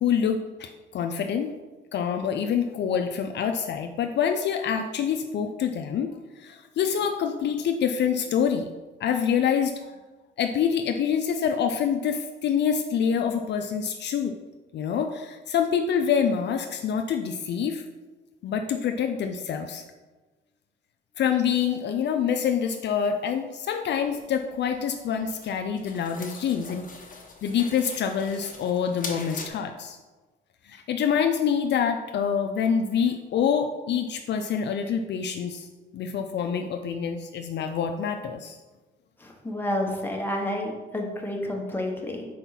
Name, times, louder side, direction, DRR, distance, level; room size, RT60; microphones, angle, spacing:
voice 1, 0.0-1.5 1.9-8.7 9.0-9.7 10.4-14.3 14.7-17.8 18.4-19.8 21.2-26.9 27.4-30.0 30.7-35.7 35.9-38.6, left 7 dB, 60° left, 5 dB, 0.5 m, -26 dB
sound 1, 23.9-29.5, left 4 dB, 40° left, 1.1 m, -42 dB
voice 2, 39.2-42.3, left 1 dB, 10° left, 0 dB, 1.3 m, -30 dB
4.5 x 4.3 x 5.7 m, 1.2 s
cardioid pair, 90°, 20 cm